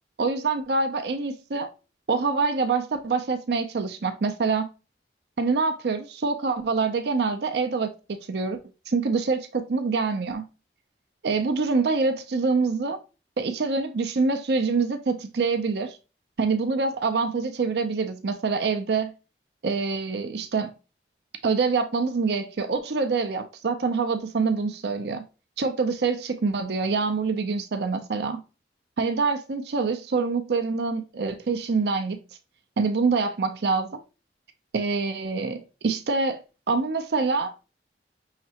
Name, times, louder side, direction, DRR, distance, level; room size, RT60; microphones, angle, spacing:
voice 1, 0.2-1.7 2.1-4.7 5.4-8.6 8.9-10.4 11.2-13.0 13.4-16.0 16.4-19.1 19.6-20.7 21.4-25.2 25.6-28.4 29.0-32.2 32.8-34.0 34.7-36.4 36.7-37.5, right 4 dB, 65° right, 0.5 m, -25 dB
5.7 x 3.2 x 2.8 m
head